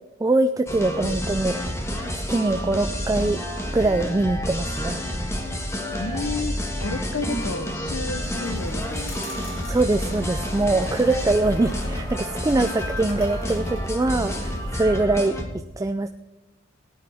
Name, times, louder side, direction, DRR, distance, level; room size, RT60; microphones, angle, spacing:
voice 1, 0.2-1.6 2.1-3.4 3.7-5.0 7.3-7.4 9.7-15.3 15.8-16.1, right 2 dB, 15° right, 8 dB, 0.3 m, -23 dB
sound 1, 0.7-15.5, equal, 15° left, 1.5 m, -29 dB
voice 2, 6.0-9.2, left 3 dB, 70° left, 7 dB, 0.8 m, -32 dB
sound 2, 8.2-14.8, left 2 dB, 85° left, 3.2 m, -41 dB
17.5 x 9.8 x 3.5 m, 1.0 s
head